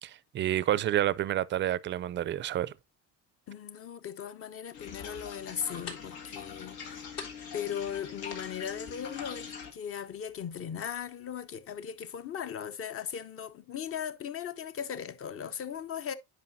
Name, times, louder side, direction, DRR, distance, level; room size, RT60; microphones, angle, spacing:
voice 1, 0.0-2.7, right 12 dB, 35° right, 0.4 m, -29 dB
voice 2, 3.5-7.1 7.5-16.2, left 8 dB, 40° left, 0.7 m, -38 dB
sound 1, 4.7-9.7, left 6 dB, 85° left, 1.8 m, -43 dB
sound 2, 4.9-11.9, left 5 dB, 65° left, 3.7 m, -52 dB
9.4 x 5.2 x 2.6 m
cardioid pair, 110°, 36 cm